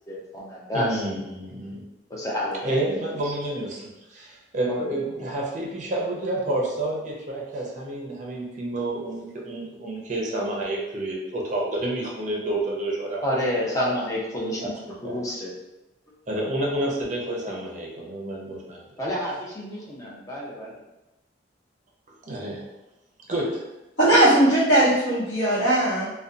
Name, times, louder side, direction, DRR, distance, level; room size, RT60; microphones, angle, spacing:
voice 1, 0.1-1.0 2.1-3.1 4.7-5.3 13.2-15.5 16.8-16.9 17.3-17.5 19.0-20.7, left 1 dB, 20° left, -4 dB, 0.5 m, -30 dB
voice 2, 0.7-1.8 2.6-13.2 14.4-14.6 15.0-15.1 16.3-18.8 22.3-22.6 23.3-23.6, right 1 dB, 40° right, -2 dB, 0.5 m, -29 dB
voice 3, 24.0-26.1, right 1 dB, 70° left, -14 dB, 0.9 m, -19 dB
2.6 x 2.2 x 2.5 m, 0.98 s
head